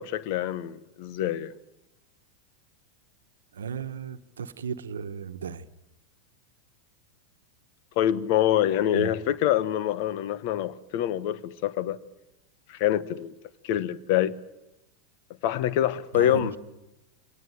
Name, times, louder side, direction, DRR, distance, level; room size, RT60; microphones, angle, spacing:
voice 1, 0.0-1.5 8.0-12.0 12.7-13.3 13.6-14.3 15.4-16.5, left 11 dB, 60° left, 1.2 m, -25 dB
voice 2, 3.5-5.7 8.9-9.1 16.1-16.5, right 7 dB, 85° right, 1.1 m, -35 dB
25.5 x 19.0 x 9.3 m
hypercardioid pair, 105°, 0 cm